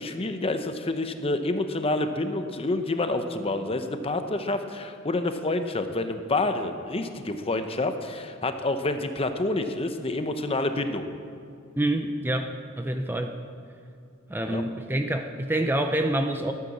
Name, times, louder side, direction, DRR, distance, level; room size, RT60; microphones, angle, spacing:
voice 1, 0.0-11.1 14.5-14.6, left 2 dB, 25° left, 8 dB, 0.8 m, -28 dB
voice 2, 11.8-12.5 12.8-13.3 14.3-16.5, right 1 dB, 10° right, 5 dB, 0.5 m, -26 dB
12.0 x 9.5 x 7.2 m, 2.5 s
head